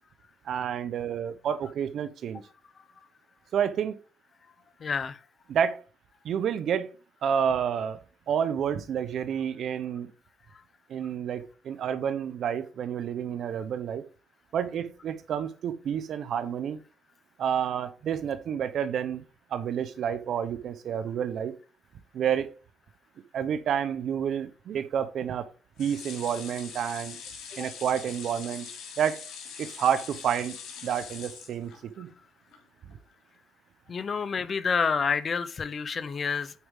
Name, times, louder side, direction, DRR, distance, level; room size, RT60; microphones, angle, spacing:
voice 1, 0.5-2.4 3.5-4.0 5.5-5.8 6.2-6.9 7.2-8.0 8.3-10.1 10.9-14.0 14.5-16.8 17.4-19.2 19.5-21.5 22.1-22.5 23.3-25.5 25.8-27.2 27.6-28.7 29.0-29.2 29.6-30.6 30.8-32.1, right 8 dB, 65° right, 0.9 m, -29 dB
voice 2, 4.8-5.2 33.9-36.5, left 5 dB, 45° left, 0.8 m, -28 dB
sound 1, 25.8-32.1 32.5-32.6 32.9-33.0, left 6 dB, 80° left, 3.2 m, -43 dB
8.5 x 4.6 x 3.8 m
cardioid pair, 90°, 0 cm